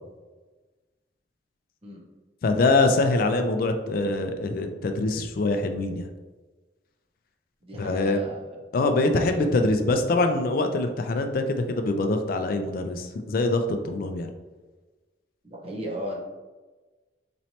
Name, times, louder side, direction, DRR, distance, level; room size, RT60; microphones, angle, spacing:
voice 1, 2.4-6.1 7.7-8.2 8.7-14.3, left 2 dB, 55° left, 6 dB, 0.3 m, -24 dB
voice 2, 7.6-8.6 9.1-9.6 15.4-16.2, equal, 35° right, -1 dB, 0.8 m, -36 dB
4.2 x 3.0 x 2.8 m, 1.2 s
head